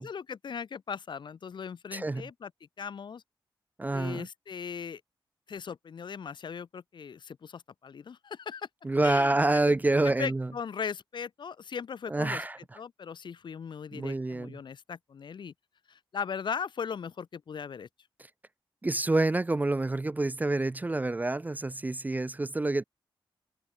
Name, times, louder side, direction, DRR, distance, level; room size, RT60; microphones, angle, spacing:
voice 1, 0.0-2.5 2.8-3.2 3.9-5.0 5.5-8.7 9.0-12.4 12.8-15.5 15.9-17.9, left 6 dB, 60° left, 0.7 m, -38 dB
voice 2, 1.9-2.3 3.8-4.3 8.8-10.5 12.1-12.6 13.9-14.6 18.8-22.8, right 2 dB, 20° right, 0.4 m, -27 dB
cardioid pair, 70°, 9 cm